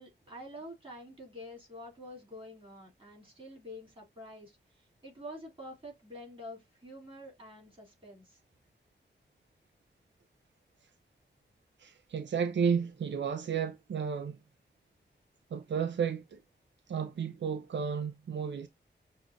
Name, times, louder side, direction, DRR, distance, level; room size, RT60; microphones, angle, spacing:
voice 1, 0.0-8.4, equal, 30° right, 3.0 m, -47 dB
voice 2, 11.8-14.4 15.5-16.4 16.9-18.7, right 6 dB, 80° right, 0.5 m, -32 dB
6.6 x 2.4 x 2.5 m
wide cardioid pair, 130°, 19 cm